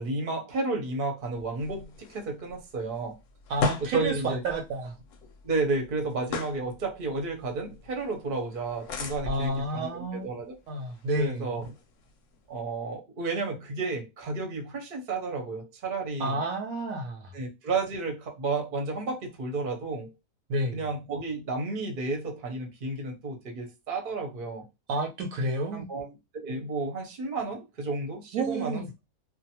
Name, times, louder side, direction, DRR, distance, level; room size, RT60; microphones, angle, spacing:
voice 1, 0.0-3.2 3.9-4.4 5.4-10.5 11.2-11.6 12.5-16.4 17.3-20.1 20.7-24.7 25.7-28.8, right 3 dB, 45° right, 0.7 m, -32 dB
sound 1, 1.2-12.5, left 3 dB, 65° left, 0.9 m, -39 dB
voice 2, 3.5-4.9 9.3-10.3 10.7-11.6 16.2-17.3 20.5-20.9 24.9-25.9 28.3-28.9, right 2 dB, 70° right, 0.9 m, -30 dB
2.5 x 2.2 x 2.8 m
omnidirectional pair, 1.6 m